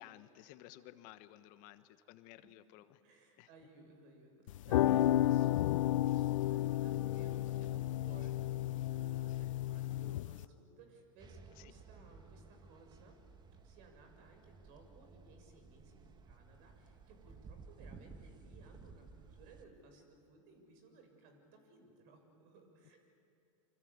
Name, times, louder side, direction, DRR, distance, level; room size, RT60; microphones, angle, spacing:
voice 1, 0.0-3.0 3.4-3.5 4.9-5.0 11.6-11.7, left 14 dB, 55° left, 11 dB, 1.3 m, -55 dB
voice 2, 3.0-13.2 13.6-23.0, right 3 dB, 55° right, 5 dB, 6.9 m, -60 dB
sound 1, 4.5-10.4, left 14 dB, 75° left, 0.6 m, -32 dB
sound 2, 11.2-19.6, right 4 dB, 25° right, 1.7 m, -56 dB
28.0 x 25.5 x 8.2 m, 2.6 s
hypercardioid pair, 95°, 17 cm